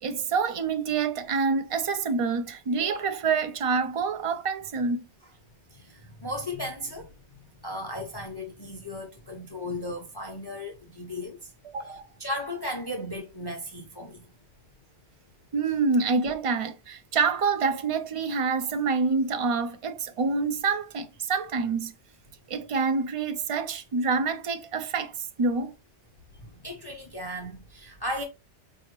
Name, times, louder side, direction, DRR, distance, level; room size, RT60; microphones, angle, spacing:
voice 1, 0.0-5.0 11.6-12.0 15.5-21.9 22.5-25.7, right 4 dB, 50° right, 0.4 m, -27 dB
voice 2, 5.7-7.1 7.6-11.4 11.9-14.2 26.4-28.2, left 1 dB, 25° left, 0.7 m, -36 dB
4.7 x 2.8 x 3.0 m
omnidirectional pair, 1.2 m